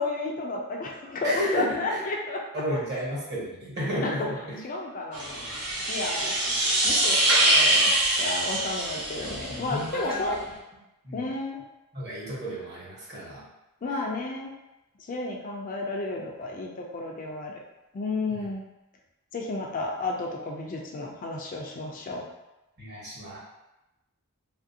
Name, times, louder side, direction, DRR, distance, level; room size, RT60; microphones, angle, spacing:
voice 1, 0.0-3.0 4.0-4.3 4.6-5.4 5.9-6.3 6.8-7.9 8.2-10.4 11.1-11.6 13.8-14.5 15.0-17.5 17.9-18.6 19.3-22.3, left 2 dB, 35° left, 0 dB, 0.4 m, -32 dB
voice 2, 1.2-2.0 2.5-4.7 9.5-10.2 11.0-11.2 11.9-13.4 18.4-18.5 22.8-23.4, equal, 50° right, -6 dB, 1.1 m, -32 dB
sound 1, 5.1-9.9, right 1 dB, 80° right, 0.9 m, -24 dB
3.0 x 2.5 x 2.6 m, 0.99 s
head